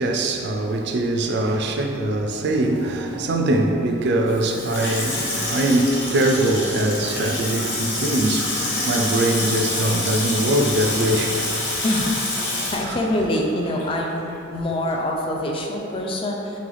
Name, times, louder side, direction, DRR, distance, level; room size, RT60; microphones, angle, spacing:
voice 1, 0.0-11.4, right 1 dB, 55° right, 0.4 m, -22 dB
Water tap faucet / Sink (filling or washing), 4.3-14.0 14.3-14.4, left 1 dB, 60° left, 0.8 m, -27 dB
voice 2, 11.8-16.6, left 1 dB, 25° left, 0.4 m, -25 dB
3.3 x 3.3 x 3.8 m
head